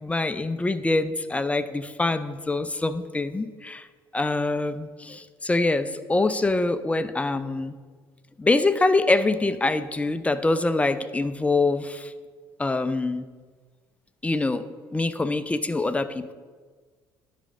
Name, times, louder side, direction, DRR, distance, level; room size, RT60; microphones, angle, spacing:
voice 1, 0.0-3.9 4.1-7.8 8.4-12.1 12.6-13.3 14.2-14.6 14.9-16.3, left 2 dB, 10° left, 13 dB, 0.5 m, -24 dB
11.5 x 5.1 x 3.7 m, 1.5 s
figure-of-eight pair, 55°, 11 cm